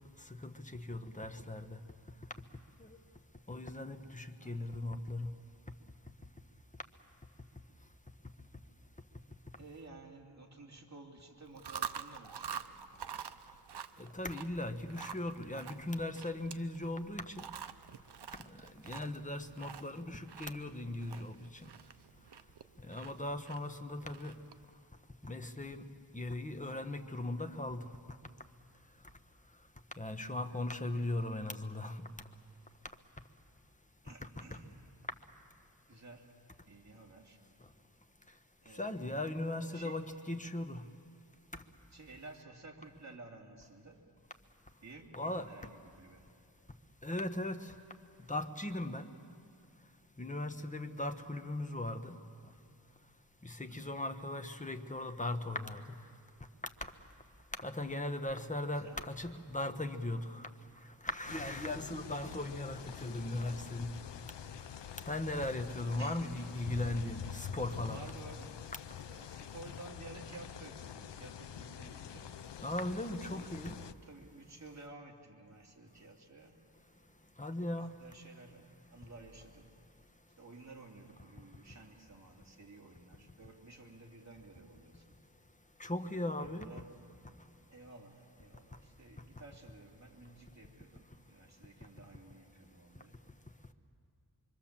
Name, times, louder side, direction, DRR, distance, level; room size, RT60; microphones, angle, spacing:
voice 1, 0.4-1.8 2.8-2.9 3.5-5.3 14.0-17.4 18.8-21.3 21.6-21.7 22.9-24.3 25.2-25.8 26.1-27.8 30.0-32.0 38.7-40.8 45.1-45.5 47.0-47.7 48.3-49.1 50.2-52.2 53.4-55.8 56.8-56.9 57.6-60.5 61.0-63.9 65.1-68.0 72.6-73.8 77.4-78.0 85.8-86.7, left 1 dB, 20° left, 7 dB, 1.2 m, -38 dB
voice 2, 4.4-4.9 9.5-12.8 21.0-21.5 30.9-31.1 34.0-34.9 35.9-36.3 36.7-37.4 38.6-39.2 39.7-40.0 41.9-44.0 44.8-46.4 53.7-54.0 58.7-59.0 66.0-66.5 67.9-68.6 69.0-72.4 73.2-76.6 76.9-77.2 77.6-79.7 80.4-85.2 86.0-86.9 87.7-93.2, right 2 dB, 40° right, 1 dB, 2.6 m, -54 dB
Chewing mastication, 11.4-24.7, right 8 dB, 70° right, 0.7 m, -47 dB
sound 1, 61.3-73.9, left 9 dB, 85° left, 0.6 m, -46 dB
25.0 x 24.5 x 7.4 m, 2.5 s
wide cardioid pair, 65°, 41 cm